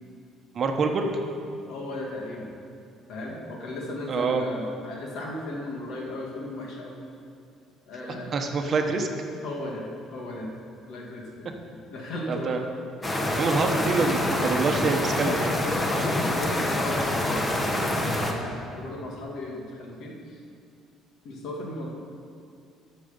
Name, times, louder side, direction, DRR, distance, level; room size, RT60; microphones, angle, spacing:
voice 1, 0.5-1.1 4.1-4.4 8.1-9.1 12.3-12.6 13.2-15.5, right 4 dB, 35° right, 3 dB, 1.0 m, -26 dB
voice 2, 1.7-2.5 3.1-6.9 7.9-8.3 9.4-10.5 10.9-12.6 15.2-20.4 21.2-21.9, left 2 dB, 70° left, -1 dB, 2.2 m, -36 dB
sound 1, 13.0-18.3, left 1 dB, 15° left, 1.0 m, -26 dB
14.0 x 6.5 x 5.3 m, 2.4 s
cardioid pair, 145°, 0 cm